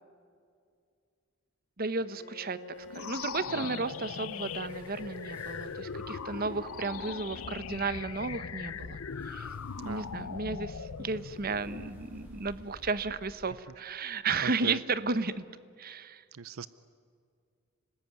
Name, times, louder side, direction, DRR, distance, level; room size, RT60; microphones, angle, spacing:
voice 1, 1.8-2.6 2.9-9.5 9.8-15.4 15.8-16.2, right 4 dB, 45° right, 14 dB, 1.0 m, -33 dB
Bowed string instrument, 2.0-8.3, left 2 dB, 65° left, 4.9 m, -51 dB
sound 1, 2.7-13.3, equal, 10° right, 7.4 m, -55 dB
sound 2, 2.9-12.4, left 6 dB, 80° left, 0.7 m, -40 dB
voice 2, 14.4-14.8 16.3-16.7, right 6 dB, 80° right, 16 dB, 0.6 m, -39 dB
30.0 x 20.0 x 9.6 m, 2.3 s
head